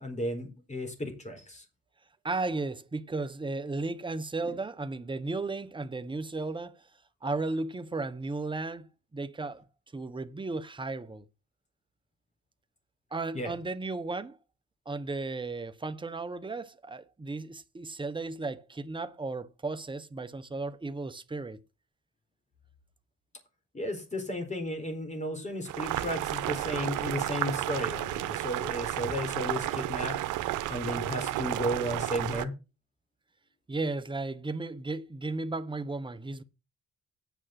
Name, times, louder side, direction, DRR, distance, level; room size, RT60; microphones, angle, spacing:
voice 1, 0.0-1.6 4.4-4.6 13.3-13.5 23.7-30.2 30.7-32.5, equal, 25° left, 4.2 m, -34 dB
voice 2, 2.2-6.8 7.2-9.6 9.9-11.2 13.1-14.4 14.9-21.6 33.7-36.4, right 3 dB, 15° right, 1.0 m, -35 dB
Boiling, 25.7-32.4, right 14 dB, 85° right, 0.9 m, -32 dB
9.2 x 6.1 x 5.9 m
cardioid pair, 90°, 30 cm